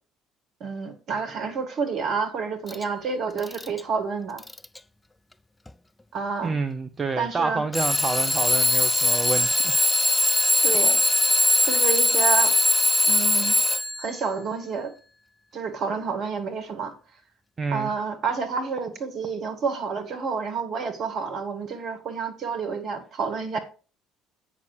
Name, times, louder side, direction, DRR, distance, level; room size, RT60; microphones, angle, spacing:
voice 1, 0.6-4.4 6.1-6.6 7.2-7.7 10.6-11.0 11.6-12.6 13.1-13.6 14.0-14.9 15.5-17.0 17.7-23.6, right 5 dB, 50° right, 2.0 m, -29 dB
Alarm / Clock, 2.7-2.8 3.4-3.8 4.4-4.8 5.7-5.8 7.7-14.1, left 2 dB, 10° left, 0.4 m, -21 dB
voice 2, 6.4-9.7 17.6-17.9, right 3 dB, 25° right, 0.7 m, -28 dB
8.4 x 6.2 x 4.9 m
figure-of-eight pair, 55°, 0 cm